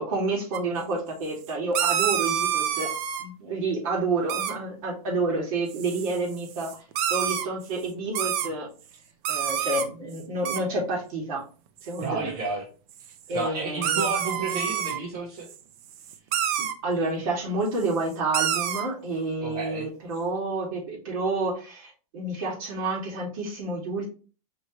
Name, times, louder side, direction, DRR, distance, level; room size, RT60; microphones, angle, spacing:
voice 1, 0.0-2.9 3.2-6.8 7.1-8.7 9.3-11.4 11.8-12.3 13.3-14.1 16.8-24.1, right 2 dB, 65° right, -1 dB, 2.2 m, -29 dB
sound 1, 0.5-0.6 1.5-3.3 4.3-4.6 5.7-7.5 8.1-8.5 9.2-9.9 10.2-10.3 10.4-10.6 11.8-12.0 13.0-13.1 13.8-15.0 15.4-15.6 15.9-16.7 17.8-17.9 18.3-18.9, right 10 dB, 45° right, 0.6 m, -27 dB
voice 2, 12.0-12.6 13.3-15.5 19.4-19.9, right 3 dB, 80° right, -4 dB, 1.6 m, -31 dB
5.2 x 3.0 x 3.0 m, 0.37 s
supercardioid pair, 140°, 19 cm